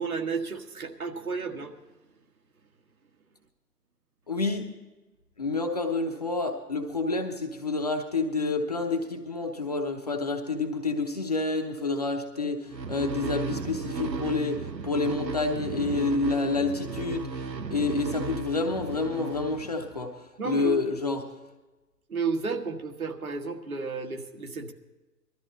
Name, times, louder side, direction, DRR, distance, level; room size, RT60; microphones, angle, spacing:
voice 1, 0.0-1.7 20.4-20.8 22.1-24.7, right 5 dB, 60° right, 4 dB, 1.6 m, -32 dB
voice 2, 4.3-4.7 5.4-17.3 17.7-21.3, left 3 dB, 25° left, 2 dB, 0.8 m, -28 dB
sound 1, 12.7-20.1, right 4 dB, 80° right, 1.0 m, -35 dB
19.0 x 13.5 x 4.1 m, 1.1 s
figure-of-eight pair, 140°, 50 cm